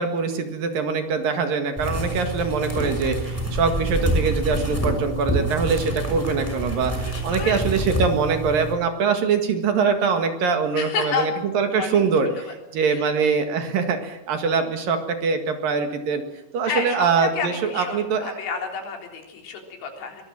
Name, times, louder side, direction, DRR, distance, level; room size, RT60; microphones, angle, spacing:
voice 1, 0.0-16.2 16.5-18.4, right 5 dB, 60° right, 6 dB, 3.3 m, -23 dB
sound 1, 1.8-8.7, right 1 dB, 5° left, 5.5 m, -27 dB
voice 2, 7.0-7.6 10.8-11.3 11.8-12.0 12.4-12.5 12.9-13.1 16.7-20.2, left 5 dB, 85° left, 2 dB, 5.9 m, -30 dB
23.0 x 19.5 x 7.4 m, 0.91 s
omnidirectional pair, 5.0 m